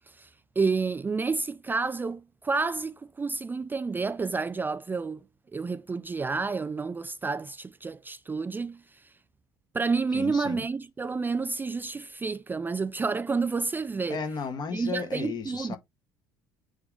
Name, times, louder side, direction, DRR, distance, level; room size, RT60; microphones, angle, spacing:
voice 1, 0.1-5.2 5.5-9.1 9.7-14.2 14.7-15.8, right 4 dB, 15° right, 0.4 m, -30 dB
voice 2, 10.1-10.6 14.1-15.8, left 5 dB, 40° left, 1.8 m, -34 dB
8.8 x 3.6 x 3.7 m
figure-of-eight pair, 60°, 11 cm